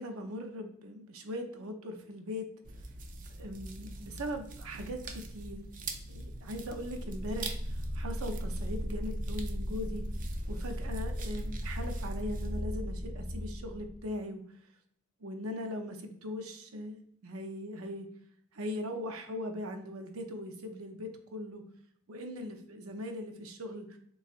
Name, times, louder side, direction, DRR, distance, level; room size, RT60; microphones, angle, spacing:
voice 1, 0.0-2.5 3.4-5.6 6.1-7.6 7.9-10.1 10.5-14.4 15.2-18.1 18.5-21.6 22.1-24.0, left 1 dB, 85° right, 5 dB, 0.7 m, -40 dB
sound 1, 2.6-12.6, right 2 dB, 40° right, 0.4 m, -44 dB
sound 2, 6.5-14.2, equal, 70° left, 1.5 m, -37 dB
7.0 x 2.4 x 2.5 m, 0.68 s
head